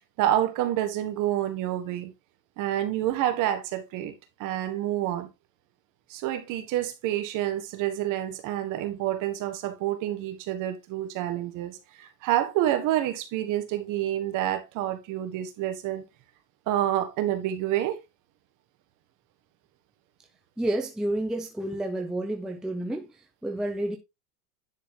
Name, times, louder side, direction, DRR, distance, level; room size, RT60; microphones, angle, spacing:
voice 1, 0.2-2.1 2.6-4.1 4.4-5.3 6.1-16.0 16.7-18.0, right 12 dB, 40° right, 1.5 m, -28 dB
voice 2, 20.6-24.0, right 1 dB, ahead, 0.6 m, -30 dB
10.5 x 4.2 x 3.7 m
supercardioid pair, 145°, 49 cm